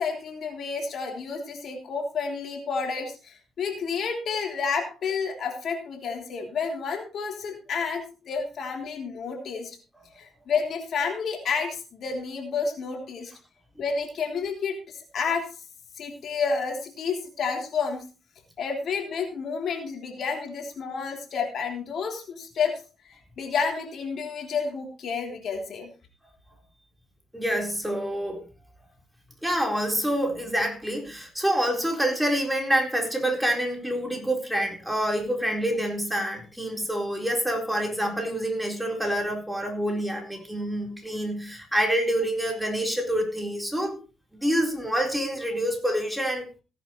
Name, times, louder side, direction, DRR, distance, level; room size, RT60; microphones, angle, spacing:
voice 1, 0.0-9.8 10.2-13.3 13.8-15.5 15.9-18.0 18.6-25.9, left 5 dB, 60° left, 2 dB, 3.2 m, -30 dB
voice 2, 27.3-28.4 29.4-44.0 44.3-46.5, equal, 5° right, 2 dB, 4.2 m, -27 dB
17.5 x 10.5 x 3.2 m, 0.33 s
cardioid pair, 90°, 0 cm